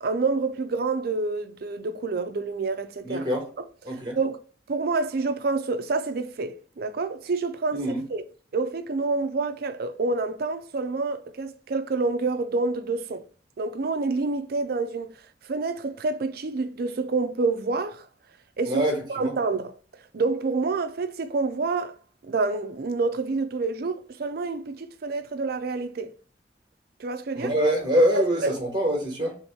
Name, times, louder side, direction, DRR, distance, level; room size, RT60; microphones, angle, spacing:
voice 1, 0.0-3.3 3.6-3.7 4.2-4.4 4.7-7.8 8.1-8.2 8.5-13.2 13.6-15.1 15.5-18.1 18.6-18.8 19.1-19.7 20.1-22.0 22.2-26.1 27.0-27.5 28.1-28.5, right 3 dB, 55° right, 0.4 m, -28 dB
voice 2, 3.0-3.4 3.8-4.2 7.7-8.0 18.7-19.3 27.3-29.4, equal, 25° right, 1.2 m, -24 dB
3.1 x 2.9 x 4.4 m
head